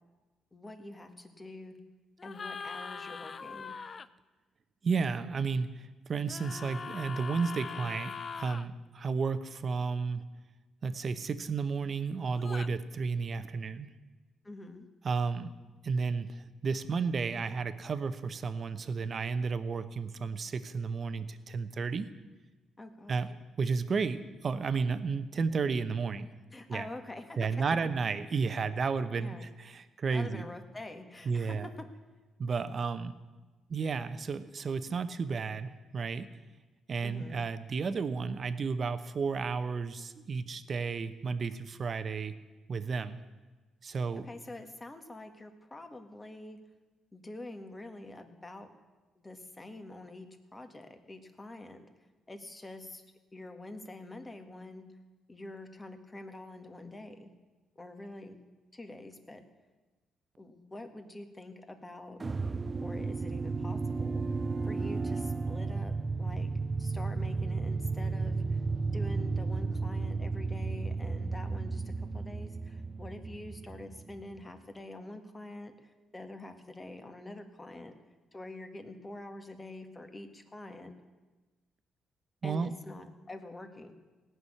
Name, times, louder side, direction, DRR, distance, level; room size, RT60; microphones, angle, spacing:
voice 1, 0.5-1.8 2.2-3.8 14.4-14.9 22.8-23.2 26.5-27.4 29.2-29.4 30.1-31.9 37.0-37.5 44.2-46.6 47.1-48.7 49.2-51.9 52.3-53.0 53.3-54.8 55.3-57.3 57.7-58.4 58.7-59.4 60.4-62.2 62.8-64.2 64.6-66.5 66.8-68.6 68.9-77.9 78.3-80.9 82.4-83.9, left 2 dB, 20° left, 6 dB, 1.7 m, -46 dB
sound 1, 2.2-4.1 6.2-8.7 12.3-12.7, left 5 dB, 40° left, 0.5 m, -41 dB
voice 2, 4.8-10.3 10.8-13.9 15.0-15.5 15.8-22.1 23.1-26.3 26.7-26.9 27.4-30.5 31.2-31.7 32.4-33.1 33.7-36.3 36.9-42.3 42.7-43.2 43.8-44.3 82.4-82.7, right 5 dB, 45° right, 11 dB, 0.9 m, -32 dB
sound 2, 62.2-74.4, right 4 dB, 25° right, 0.5 m, -33 dB
17.5 x 6.3 x 9.9 m, 1.2 s
cardioid pair, 90°, 0 cm